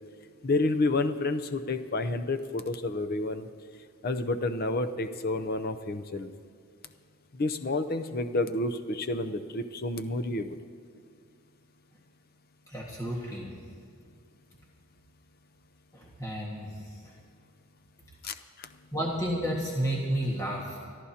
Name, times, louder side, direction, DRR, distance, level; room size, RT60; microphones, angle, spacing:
voice 1, 0.4-3.5 4.0-6.3 7.3-10.6 18.2-18.7, left 2 dB, 45° left, 8 dB, 0.6 m, -30 dB
voice 2, 12.7-13.5 15.9-16.7 18.9-20.8, equal, 15° left, -4 dB, 1.6 m, -31 dB
26.5 x 13.5 x 2.9 m, 2.2 s
head